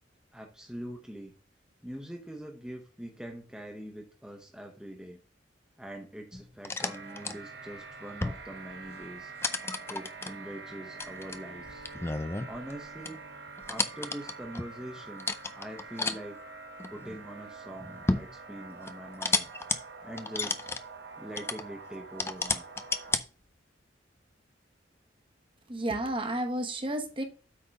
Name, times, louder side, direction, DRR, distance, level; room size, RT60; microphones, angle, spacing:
voice 1, 0.3-1.3 1.8-5.2 5.8-9.3 9.9-11.8 12.4-13.2 13.6-16.4 16.9-19.5 20.0-20.6 21.2-22.6, equal, 5° right, 0.8 m, -43 dB
wood drawers open close +door metal knocker, 6.3-7.4 8.1-8.5 8.8-9.0 9.4-10.3 11.0-12.8 13.1-13.2 13.6-14.7 15.2-16.2 16.8-17.2 17.7-18.3 18.9-19.8 20.2-20.8 21.4-21.6 22.2-23.2, left 3 dB, 15° left, 0.4 m, -32 dB
sound 1, 6.8-23.2, right 4 dB, 60° right, 1.0 m, -46 dB
voice 2, 25.7-27.2, right 1 dB, 25° right, 1.0 m, -31 dB
8.4 x 3.8 x 5.3 m
head